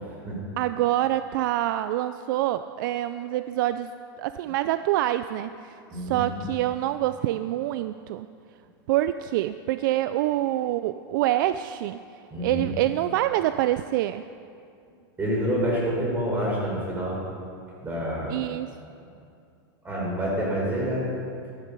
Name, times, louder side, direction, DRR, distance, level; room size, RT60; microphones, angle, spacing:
voice 1, 0.6-3.9 4.2-5.8 6.1-8.3 8.9-12.0 12.4-14.2 18.3-18.7, right 14 dB, 55° right, 12 dB, 0.4 m, -26 dB
voice 2, 5.9-6.5 12.3-12.8 15.2-17.2 17.8-18.3 19.0-19.1 19.8-21.1, equal, 15° right, -4 dB, 4.1 m, -28 dB
13.0 x 12.0 x 5.3 m, 2.4 s
supercardioid pair, 155°, 13 cm